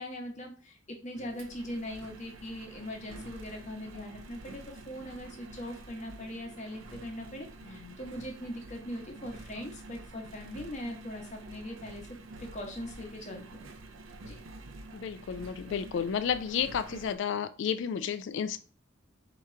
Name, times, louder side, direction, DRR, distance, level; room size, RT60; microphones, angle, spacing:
voice 1, 0.0-12.1 12.4-13.7 14.2-14.4, left 1 dB, 35° left, 2 dB, 1.0 m, -41 dB
Engine, 1.1-17.2, right 2 dB, 85° right, 0.6 m, -48 dB
voice 2, 7.6-8.0 14.9-18.6, left 7 dB, 65° left, 12 dB, 0.3 m, -32 dB
3.6 x 2.9 x 4.3 m, 0.38 s
head